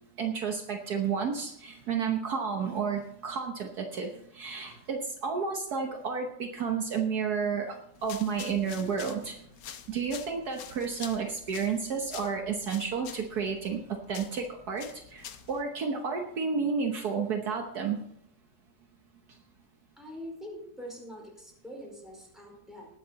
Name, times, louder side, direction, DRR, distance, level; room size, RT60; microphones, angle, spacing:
voice 1, 0.2-9.4 9.9-18.0, right 6 dB, 65° right, 3 dB, 1.6 m, -31 dB
sound 1, 7.9-15.6, left 9 dB, 85° left, 1.5 m, -47 dB
voice 2, 20.0-22.9, equal, ahead, -2 dB, 4.7 m, -44 dB
19.5 x 7.7 x 4.1 m, 0.72 s
omnidirectional pair, 1.8 m